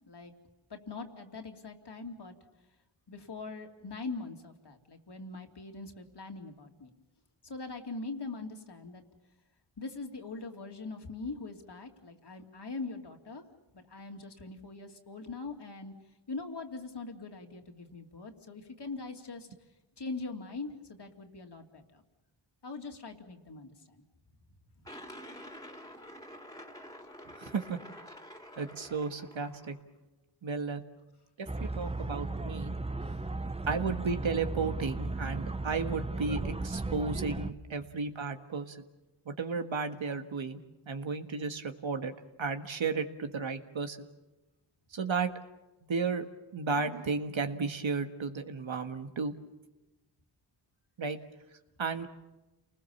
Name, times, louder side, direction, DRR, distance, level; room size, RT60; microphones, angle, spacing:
voice 1, 0.7-2.4 3.1-6.9 7.4-9.0 9.8-13.4 13.7-15.9 16.3-19.5 20.0-22.0 22.6-24.0 33.0-33.1, left 3 dB, 55° left, 4 dB, 2.8 m, -42 dB
sound 1, 24.8-29.8, equal, 5° left, 3.0 m, -48 dB
voice 2, 27.4-27.8 28.6-29.8 30.4-30.8 31.4-32.7 33.7-38.8 39.2-42.1 42.4-44.0 44.9-45.3 45.9-46.2 46.5-49.3 51.0-51.2 51.8-52.1, right 4 dB, 65° right, 7 dB, 1.7 m, -33 dB
sound 2, 31.5-37.5, right 2 dB, 10° right, 0.9 m, -35 dB
29.0 x 20.0 x 7.2 m, 1.0 s
cardioid pair, 55°, 50 cm